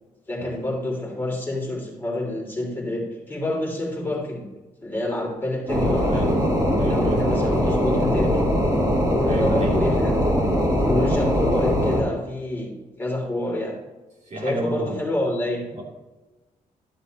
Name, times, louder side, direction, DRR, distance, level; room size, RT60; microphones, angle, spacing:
voice 1, 0.3-4.5 4.8-6.3 6.9-8.3 9.1-10.2 10.7-13.7 14.4-15.6, left 1 dB, 15° left, -2 dB, 2.9 m, -28 dB
sound 1, 5.7-12.0, equal, 25° right, 3.1 m, -21 dB
voice 2, 5.7-6.3 6.7-7.2 8.1-8.3 9.3-9.8 14.3-15.0 15.7-15.8, equal, 55° right, -3 dB, 2.9 m, -32 dB
12.5 x 7.7 x 3.0 m, 1.1 s
cardioid pair, 120°, 14 cm